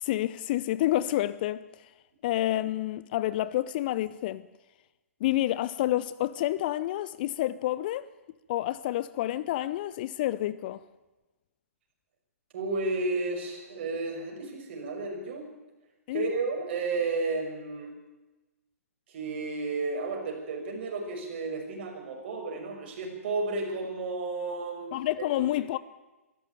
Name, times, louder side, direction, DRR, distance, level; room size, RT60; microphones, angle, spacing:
voice 1, 0.0-1.6 2.2-4.4 5.2-8.1 8.5-10.8 16.1-16.3 24.9-25.8, left 14 dB, 35° left, 0.6 m, -29 dB
voice 2, 12.5-15.5 16.1-17.9 19.1-25.3, right 3 dB, 45° right, 6.2 m, -32 dB
24.0 x 14.0 x 9.3 m
figure-of-eight pair, 125°, 8 cm